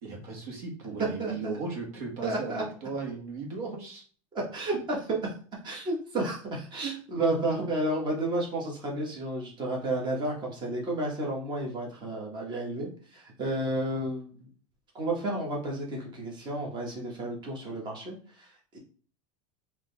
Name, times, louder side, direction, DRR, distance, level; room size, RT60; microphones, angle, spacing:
voice 1, 0.0-4.0 6.7-6.9, right 4 dB, 75° right, 0 dB, 1.6 m, -36 dB
voice 2, 1.2-1.5 2.2-2.6 4.5-5.3 5.6-14.5 14.9-18.8, right 1 dB, 25° right, -2 dB, 1.3 m, -32 dB
3.8 x 3.0 x 3.3 m, 0.41 s
supercardioid pair, 145°, 18 cm